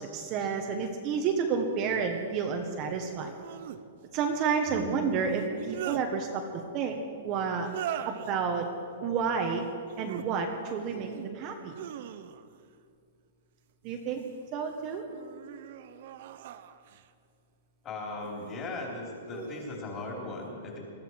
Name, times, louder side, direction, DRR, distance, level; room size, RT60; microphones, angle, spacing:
voice 1, 0.0-3.3 4.1-6.4 6.7-7.0 7.2-7.7 8.0-8.7 9.0-9.7 10.0-11.7 13.8-14.2 14.5-15.0, right 6 dB, 30° right, 3 dB, 1.3 m, -30 dB
sound 1, 0.8-0.9 3.2-3.8 5.3-6.1 7.6-8.3 9.8-10.3 10.8-11.3 11.7-12.6 13.8-14.5 15.1-17.1 18.2-18.7 19.3-19.8, right 11 dB, 50° right, 0.8 m, -41 dB
voice 2, 4.7-5.0 17.8-20.8, left 2 dB, 20° left, -2 dB, 3.8 m, -38 dB
20.5 x 14.0 x 4.8 m, 2.5 s
hypercardioid pair, 160°, 0 cm